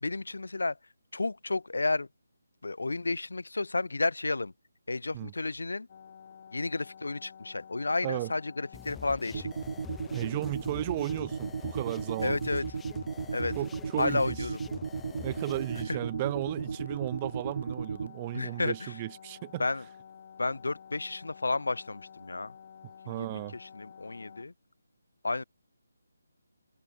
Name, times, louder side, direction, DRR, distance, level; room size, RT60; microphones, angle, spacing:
voice 1, 0.0-0.8 1.1-2.1 2.6-4.5 4.9-5.9 6.5-9.5 12.2-12.7 13.3-13.6 14.0-14.6 18.3-19.0 19.6-19.8 20.4-22.5 23.0-24.5 25.2-25.4, left 3 dB, 75° left, 0.5 m, -32 dB
sound 1, 5.9-24.5, left 7 dB, 40° left, 2.3 m, -51 dB
sound 2, 8.7-15.8, left 7 dB, 5° left, 1.6 m, -47 dB
sound 3, 9.3-18.1, right 5 dB, 55° right, 2.4 m, -35 dB
voice 2, 10.1-12.4 13.6-14.4 15.2-19.6 23.1-23.5, right 16 dB, 25° right, 0.4 m, -34 dB
figure-of-eight pair, 155°, 0 cm